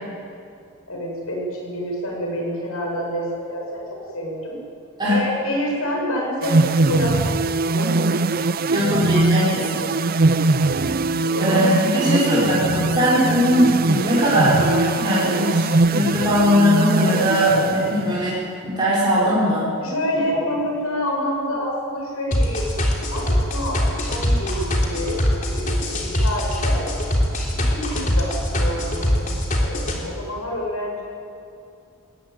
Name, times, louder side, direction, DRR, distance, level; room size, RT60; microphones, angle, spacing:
voice 1, 0.9-4.6 5.1-8.4 11.2-12.4 19.8-26.8 27.5-31.0, equal, 75° left, -1 dB, 7.0 m, -28 dB
sound 1, 6.4-18.3, right 3 dB, 40° right, 0.5 m, -21 dB
voice 2, 8.7-9.9 11.4-19.7, equal, 20° right, -9 dB, 5.0 m, -20 dB
sound 2, 22.3-30.0, left 1 dB, 35° left, 3.5 m, -21 dB
20.5 x 18.5 x 9.4 m, 2.6 s
head